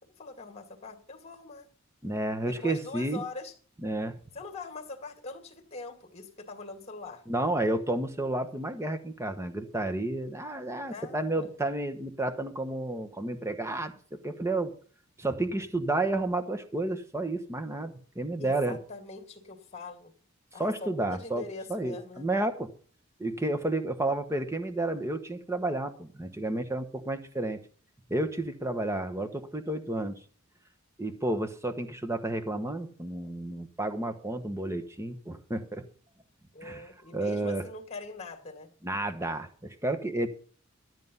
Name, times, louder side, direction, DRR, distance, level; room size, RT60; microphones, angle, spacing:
voice 1, 0.0-1.7 2.4-3.5 4.3-7.2 10.9-11.5 18.4-20.1 20.5-22.3 36.5-38.7, left 3 dB, 30° left, 6 dB, 2.3 m, -43 dB
voice 2, 2.0-3.2 3.8-4.1 7.3-13.9 14.2-14.7 15.2-18.8 20.6-22.7 23.2-27.6 28.1-30.2 31.0-35.8 36.6-36.8 37.1-37.6 38.8-40.3, right 2 dB, 15° right, 9 dB, 1.2 m, -31 dB
13.0 x 9.4 x 5.5 m, 0.43 s
head